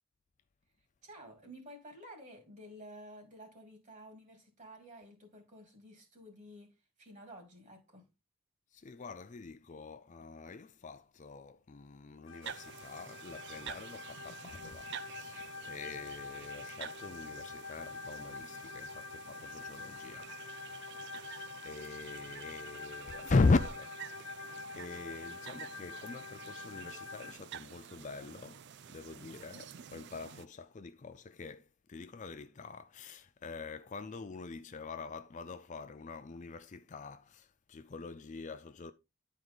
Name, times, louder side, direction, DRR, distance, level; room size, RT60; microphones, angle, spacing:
voice 1, 1.0-6.7 7.0-8.1, equal, 35° right, 2.7 m, -52 dB
voice 2, 8.7-20.3 21.2-28.6 28.9-38.9, left 3 dB, 35° left, 0.4 m, -39 dB
sound 1, 12.3-27.3, left 4 dB, 65° left, 1.2 m, -46 dB
sound 2, 12.4-30.5, right 8 dB, 50° right, 0.4 m, -50 dB
10.5 x 4.7 x 3.9 m
head